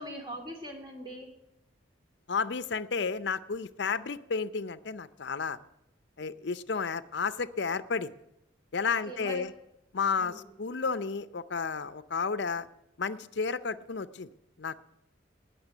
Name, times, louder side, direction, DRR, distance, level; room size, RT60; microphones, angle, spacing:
voice 1, 0.0-1.3 8.9-9.4 10.2-10.5, right 1 dB, 25° right, 2 dB, 2.9 m, -42 dB
voice 2, 2.3-5.6 6.2-8.1 8.7-9.5 9.9-12.7 13.0-14.3 14.6-14.8, left 5 dB, 60° left, 14 dB, 0.6 m, -32 dB
19.5 x 6.8 x 9.2 m, 0.86 s
head